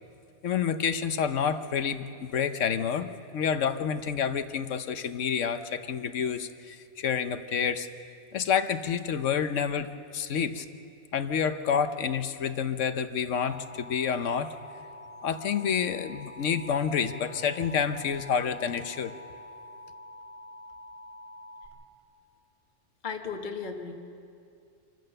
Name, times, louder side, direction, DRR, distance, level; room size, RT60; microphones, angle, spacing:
voice 1, 0.4-3.1 3.3-7.9 8.3-10.6 11.1-14.5 15.2-19.1, left 7 dB, 70° left, 10 dB, 1.2 m, -28 dB
Alarm, 13.5-21.7, left 1 dB, 50° right, 2.3 m, -46 dB
voice 2, 23.0-23.9, left 5 dB, 40° left, 4 dB, 1.3 m, -35 dB
26.5 x 14.5 x 6.7 m, 2.4 s
omnidirectional pair, 1.3 m